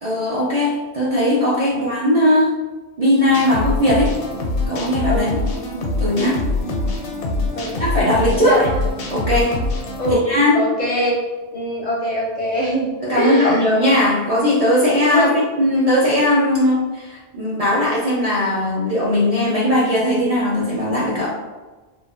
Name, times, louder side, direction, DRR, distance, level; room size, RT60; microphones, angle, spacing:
voice 1, 0.0-2.5 3.0-4.1 4.7-5.3 6.0-6.4 7.8-8.7 9.1-9.6 10.1-10.6 13.0-21.4, left 1 dB, 50° right, -7 dB, 0.4 m, -18 dB
sound 1, 3.3-10.1, left 2 dB, 85° left, 0.9 m, -24 dB
voice 2, 10.5-11.2 11.5-13.6 15.1-15.4, equal, 55° left, -5 dB, 0.5 m, -22 dB
3.1 x 2.1 x 2.4 m, 1.2 s
omnidirectional pair, 1.1 m